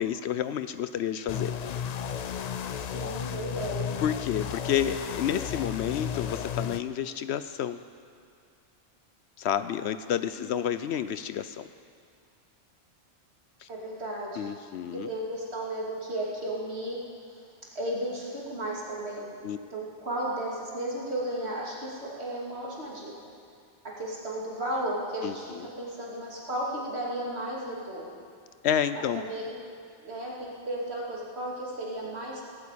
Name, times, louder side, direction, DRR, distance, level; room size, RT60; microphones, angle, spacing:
voice 1, 0.0-1.5 4.0-7.8 9.4-11.7 13.6-13.7 14.4-15.1 19.4-19.6 25.2-25.3 28.6-29.2, left 9 dB, 70° left, 12 dB, 0.8 m, -30 dB
sound 1, 1.3-6.8, left 8 dB, 55° left, 0.4 m, -33 dB
voice 2, 2.8-3.9 10.4-10.7 13.7-14.5 14.9-17.4 17.7-23.1 24.0-28.1 28.9-29.5 30.0-32.4, right 1 dB, 65° right, -4 dB, 3.0 m, -34 dB
17.0 x 8.6 x 8.4 m, 2.2 s
omnidirectional pair, 1.2 m